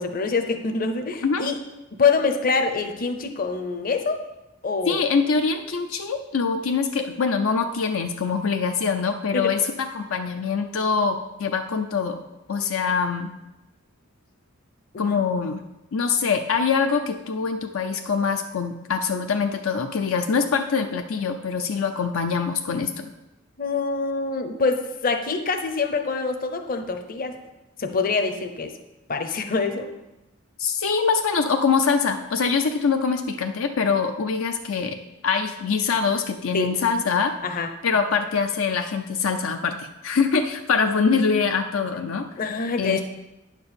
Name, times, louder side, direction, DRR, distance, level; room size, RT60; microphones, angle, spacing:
voice 1, 0.0-1.5 1.9-4.2 4.6-5.0 9.3-9.5 14.9-15.2 23.6-27.4 27.8-28.7 29.1-29.9 36.5-36.7 37.4-37.7 42.4-43.0, left 4 dB, 45° left, 6 dB, 0.8 m, -25 dB
voice 2, 4.9-12.2 12.5-13.3 15.0-15.6 15.9-23.1 30.6-35.0 35.2-37.3 37.8-42.3 42.8-43.0, left 5 dB, 75° left, 6 dB, 0.6 m, -24 dB
9.5 x 4.6 x 6.9 m, 0.99 s
head